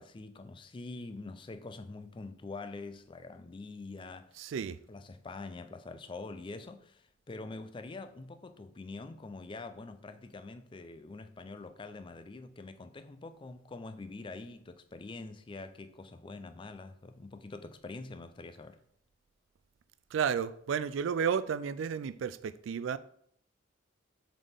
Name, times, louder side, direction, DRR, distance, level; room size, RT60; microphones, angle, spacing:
voice 1, 0.0-4.5 4.9-18.8, left 3 dB, 25° left, 0.4 m, -45 dB
voice 2, 4.4-4.8 20.1-23.0, right 7 dB, 75° right, 0.3 m, -32 dB
7.3 x 4.0 x 3.5 m
head